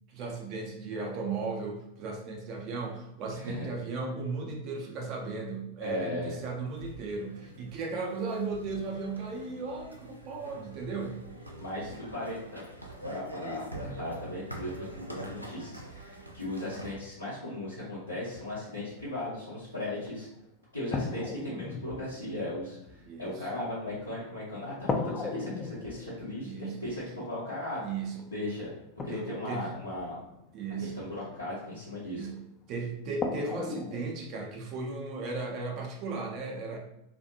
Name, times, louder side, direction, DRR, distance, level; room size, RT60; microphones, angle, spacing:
voice 1, 0.1-11.2 23.0-23.5 26.4-26.8 27.8-28.3 29.1-29.6 30.5-31.1 32.0-32.4 32.7-36.8, right 4 dB, 40° right, 1 dB, 0.6 m, -36 dB
voice 2, 3.3-3.7 5.8-6.3 11.6-20.3 20.7-27.8 28.3-28.7 29.0-30.2 30.8-32.3, left 1 dB, 90° left, -12 dB, 0.9 m, -37 dB
sound 1, 6.7-17.0, right 1 dB, 85° right, 0.4 m, -45 dB
sound 2, 20.1-20.2 20.9-24.3 24.9-31.0 32.4-32.5 33.2-34.1, left 3 dB, 20° left, 0.4 m, -37 dB
2.4 x 2.4 x 2.6 m, 0.86 s
figure-of-eight pair, 90°, 0 cm